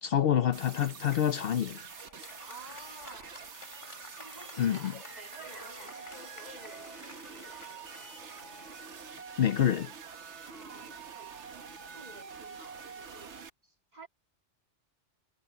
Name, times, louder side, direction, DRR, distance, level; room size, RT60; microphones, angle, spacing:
voice 1, 0.0-1.8 4.6-4.9 9.4-9.9, left 10 dB, 60° left, 0.8 m, -27 dB
sound 1, 0.5-13.5, right 6 dB, 80° right, 1.4 m, -46 dB
Applause, 0.8-10.2, left 2 dB, 45° left, 3.3 m, -52 dB
voice 2, 2.4-3.4 4.2-7.8 10.4-11.4 11.9-13.4 13.6-14.1, right 2 dB, 35° right, 2.9 m, -51 dB
omnidirectional pair, 1.2 m